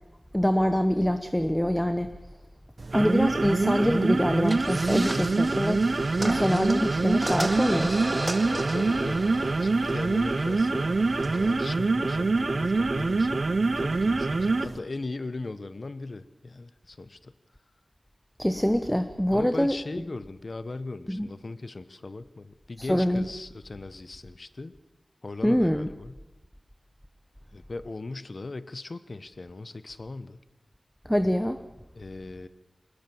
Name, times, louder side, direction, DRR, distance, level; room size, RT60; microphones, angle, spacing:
voice 1, 0.3-2.1 2.9-5.8 6.2-8.0 18.4-19.8 21.1-21.3 22.8-23.2 25.4-25.9 31.0-31.6, equal, 5° left, 10 dB, 0.9 m, -25 dB
sound 1, 2.8-14.8, right 3 dB, 55° right, 0.8 m, -25 dB
sound 2, 4.4-11.6, right 1 dB, 20° right, 1.9 m, -36 dB
voice 2, 5.8-6.4 8.5-13.4 13.8-17.3 19.3-24.7 25.2-26.2 27.5-30.4 31.9-32.5, left 3 dB, 50° left, 14 dB, 1.0 m, -38 dB
22.0 x 20.5 x 7.1 m, 1.0 s
wide cardioid pair, 85°, 0 cm